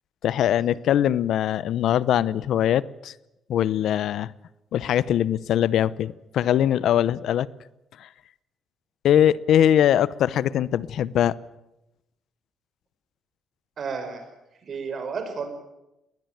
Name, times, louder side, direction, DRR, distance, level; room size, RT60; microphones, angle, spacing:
voice 1, 0.2-3.1 3.5-4.3 4.7-7.5 9.0-11.3, left 10 dB, 75° left, 20 dB, 0.7 m, -21 dB
voice 2, 13.8-14.3 14.6-15.5, right 5 dB, 50° right, 7 dB, 5.8 m, -32 dB
20.5 x 20.0 x 9.3 m, 0.92 s
cardioid pair, 90°, 0 cm